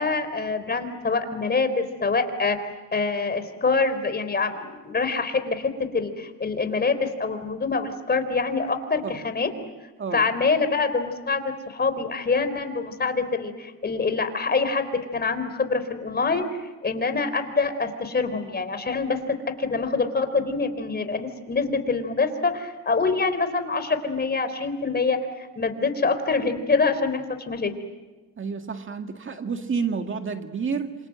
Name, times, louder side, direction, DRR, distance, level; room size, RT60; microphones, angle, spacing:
voice 1, 0.0-2.6 2.9-9.5 10.1-14.9 15.1-16.4 16.8-19.2 19.6-27.7, left 4 dB, 35° left, 9 dB, 3.8 m, -25 dB
voice 2, 28.4-30.9, right 5 dB, 40° right, 6 dB, 2.1 m, -29 dB
27.5 x 27.0 x 7.8 m, 1.2 s
cardioid pair, 90°, 30 cm